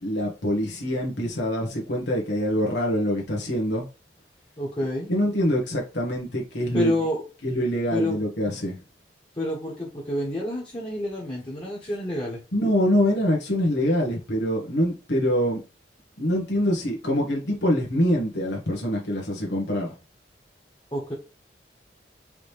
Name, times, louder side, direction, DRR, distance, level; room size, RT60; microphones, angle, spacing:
voice 1, 0.0-3.9 5.1-7.0 7.4-8.8 12.5-15.6 16.2-19.9, equal, 85° left, 1.3 m, -24 dB
voice 2, 4.6-5.1 6.7-7.2 7.9-8.2 9.4-12.4 20.9-21.1, left 1 dB, 30° left, 1.4 m, -29 dB
4.9 x 3.1 x 3.4 m
head